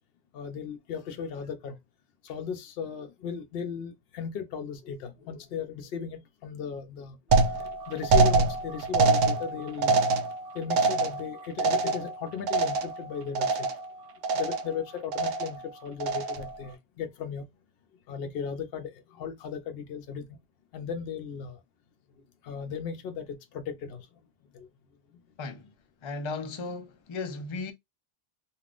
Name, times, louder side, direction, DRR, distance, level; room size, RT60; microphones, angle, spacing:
voice 1, 0.3-1.8 2.2-7.2 7.5-7.6 7.9-10.1 10.5-13.7 14.3-17.5 18.1-20.4 20.7-21.6 22.4-24.1 24.5-24.7, left 7 dB, 70° left, 0.8 m, -36 dB
sound 1, 7.3-13.1 13.4-13.9 14.2-14.8 15.1-15.6 16.0-16.6, right 3 dB, 70° right, 0.8 m, -25 dB
voice 2, 25.4-25.7 26.0-27.7, left 3 dB, 40° left, 0.4 m, -35 dB
3.5 x 2.3 x 2.4 m
omnidirectional pair, 1.0 m